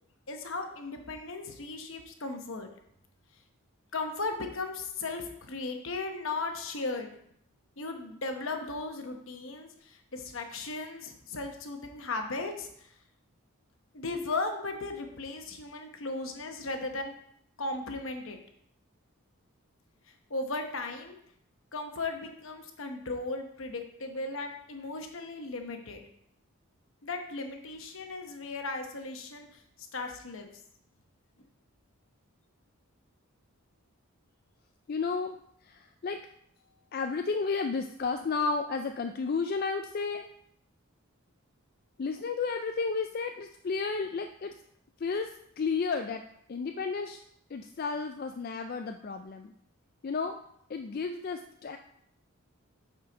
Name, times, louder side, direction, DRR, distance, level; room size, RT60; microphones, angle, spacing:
voice 1, 0.3-2.7 3.9-7.1 7.8-12.9 13.9-17.1 17.6-18.4 20.3-21.2 21.7-26.0 27.0-29.5 29.9-30.5, left 3 dB, 65° left, 5 dB, 0.9 m, -36 dB
voice 2, 34.9-35.4 35.6-36.2 36.9-40.3 42.0-44.5 45.0-45.3 45.6-46.2 46.5-47.2 47.5-49.5 50.0-50.4 50.7-51.8, left 4 dB, 45° left, 6 dB, 0.3 m, -32 dB
7.7 x 4.4 x 5.1 m, 0.70 s
head